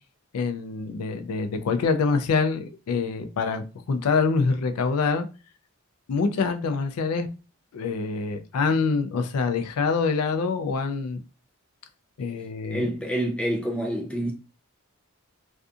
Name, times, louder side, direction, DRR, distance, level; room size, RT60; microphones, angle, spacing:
voice 1, 0.3-5.3 6.1-7.3 7.7-11.2 12.2-12.9, left 4 dB, 85° left, 0.4 m, -25 dB
voice 2, 12.7-14.3, right 1 dB, 5° left, 0.5 m, -27 dB
2.6 x 2.4 x 2.3 m
head